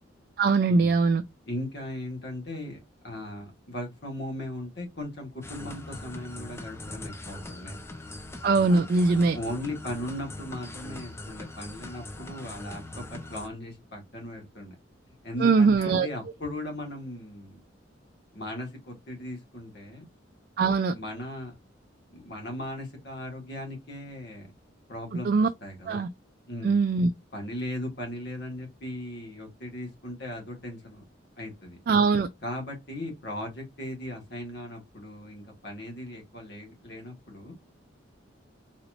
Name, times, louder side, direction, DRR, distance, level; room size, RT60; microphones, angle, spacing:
voice 1, 0.4-1.2 8.4-9.4 15.4-16.1 20.6-20.9 25.2-25.5 25.9-26.1 26.6-27.1 31.9-32.3, right 4 dB, 50° right, 0.3 m, -21 dB
voice 2, 1.5-2.8 3.0-7.8 8.7-8.9 9.3-14.8 15.1-17.6 18.3-20.1 20.9-21.6 22.1-24.5 24.9-25.3 25.6-26.0 26.5-26.8 27.3-31.0 31.4-31.8 32.4-37.5, left 1 dB, 55° left, 1.7 m, -38 dB
sound 1, 5.4-13.5, left 2 dB, 15° left, 0.5 m, -41 dB
4.0 x 3.0 x 2.5 m
head